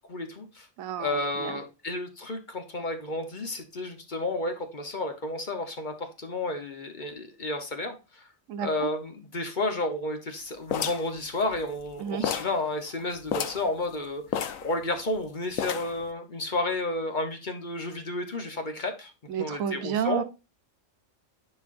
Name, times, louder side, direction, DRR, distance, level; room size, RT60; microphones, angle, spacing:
voice 1, 0.1-0.7 1.0-8.2 8.6-14.2 14.6-19.1 19.4-20.2, left 2 dB, 40° left, 1.0 m, -31 dB
voice 2, 0.8-1.6 8.5-8.9 12.0-12.2 19.3-20.2, right 8 dB, 80° right, 1.1 m, -31 dB
sound 1, 10.7-11.9 12.2-12.6 12.9-13.0 13.3-13.7 14.3-15.2 15.6-16.0, left 8 dB, 85° left, 1.1 m, -31 dB
10.5 x 4.5 x 2.5 m
omnidirectional pair, 1.4 m